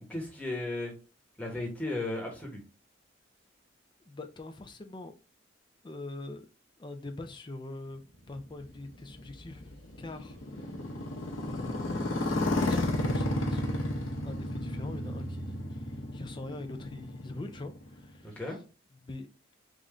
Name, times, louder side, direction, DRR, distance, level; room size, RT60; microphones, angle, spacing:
voice 1, 0.1-0.9 1.4-2.6 18.2-18.6, left 2 dB, 5° left, 1.2 m, -35 dB
voice 2, 4.0-5.1 5.8-6.5 6.8-8.0 8.3-9.7 10.0-10.7 11.5-13.6 14.2-18.6 19.0-19.3, left 2 dB, 25° left, 0.4 m, -43 dB
Motorcycle, 8.4-18.3, left 1 dB, 85° left, 0.8 m, -33 dB
3.7 x 2.6 x 3.1 m
head